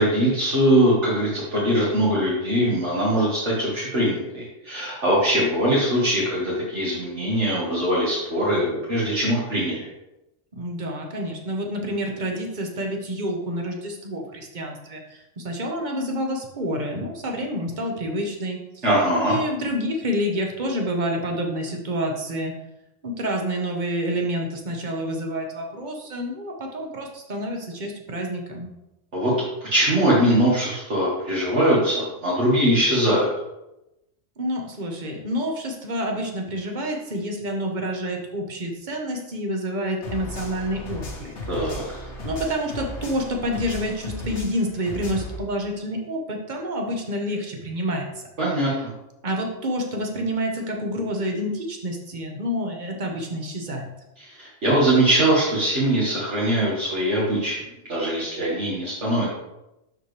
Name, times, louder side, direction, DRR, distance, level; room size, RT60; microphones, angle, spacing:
voice 1, 0.0-9.9 18.8-19.4 29.1-29.3 29.6-33.3 41.5-41.8 48.4-48.7 54.2-57.6 57.9-59.3, right 1 dB, 65° right, -7 dB, 2.1 m, -21 dB
voice 2, 10.5-18.8 19.2-22.5 23.0-28.7 34.4-41.3 41.6-48.3 48.6-48.8 49.2-53.9, equal, 40° right, 2 dB, 1.2 m, -28 dB
sound 1, 40.0-45.4, left 2 dB, 70° left, 1.5 m, -35 dB
11.5 x 4.4 x 3.3 m, 0.92 s
omnidirectional pair, 1.3 m